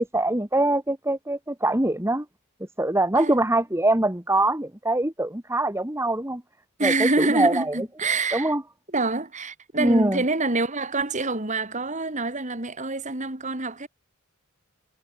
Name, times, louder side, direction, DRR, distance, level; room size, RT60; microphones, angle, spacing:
voice 1, 0.0-2.2 2.8-6.4 6.8-7.7 8.3-8.6 9.8-10.2, right 1 dB, 10° right, 1.8 m, -23 dB
voice 2, 6.8-8.5 8.9-13.9, right 3 dB, 35° right, 3.5 m, -26 dB
head